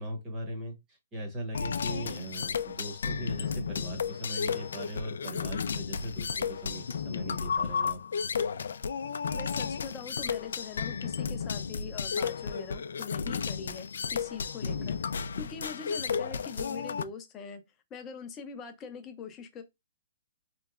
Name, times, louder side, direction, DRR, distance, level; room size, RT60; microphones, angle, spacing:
voice 1, 0.0-8.0 14.6-14.9, right 1 dB, 15° right, 0.9 m, -39 dB
sound 1, 1.5-17.0, left 6 dB, 75° left, 0.3 m, -33 dB
voice 2, 9.3-15.0 15.4-17.6 17.9-19.6, left 6 dB, 15° left, 0.5 m, -43 dB
4.3 x 2.9 x 2.4 m
hypercardioid pair, 175°, 0 cm